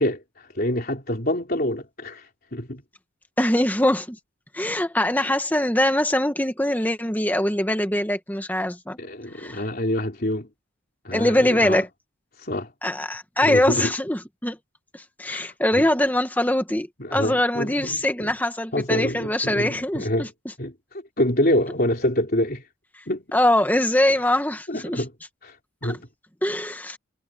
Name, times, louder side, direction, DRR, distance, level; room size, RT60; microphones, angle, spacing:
voice 1, 0.0-2.8 5.2-5.3 9.0-10.5 11.0-11.8 12.4-12.7 13.4-13.9 15.3-15.9 17.0-18.3 18.7-20.3 20.6-22.6 23.1-23.2 24.7-25.1 25.4-25.6 25.8-26.0, left 1 dB, 45° left, 3.7 m, -26 dB
voice 2, 3.4-4.2 4.5-9.0 9.4-9.6 11.1-11.9 12.8-14.6 14.9-20.3 23.3-25.0 25.8-25.9 26.4-27.0, left 1 dB, 10° left, 1.5 m, -23 dB
head